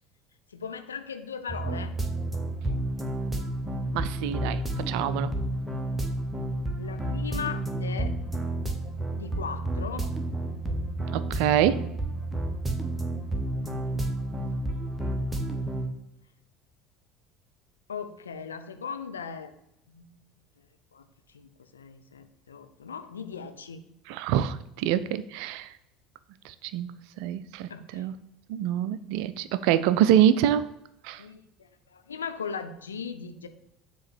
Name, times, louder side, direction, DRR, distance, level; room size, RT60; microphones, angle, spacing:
voice 1, 0.5-1.9 5.1-5.5 6.8-8.1 9.1-10.1 17.9-19.6 19.9-20.1 20.9-23.8 27.7-28.1 31.2-33.5, left 6 dB, 75° left, 8 dB, 0.5 m, -38 dB
sound 1, 1.5-15.9, right 1 dB, 10° right, 0.9 m, -31 dB
voice 2, 3.9-5.3 11.1-11.8 24.1-25.7 26.4-28.1 28.5-30.7 31.0-31.2, right 10 dB, 55° right, 14 dB, 0.4 m, -25 dB
7.2 x 3.0 x 6.1 m, 0.84 s
figure-of-eight pair, 65°, 0 cm